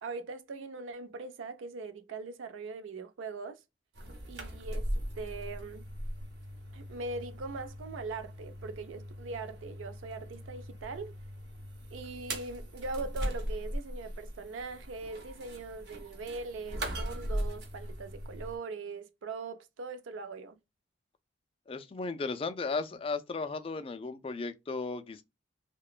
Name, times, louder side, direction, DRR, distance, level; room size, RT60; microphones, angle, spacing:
voice 1, 0.0-3.6 4.3-4.9 5.2-5.8 6.7-11.1 11.9-20.6, right 3 dB, 85° right, 0.4 m, -41 dB
sound 1, 3.9-18.6, equal, 60° right, 0.8 m, -39 dB
voice 2, 21.7-25.2, left 4 dB, 30° left, 0.3 m, -35 dB
2.9 x 2.1 x 2.3 m
head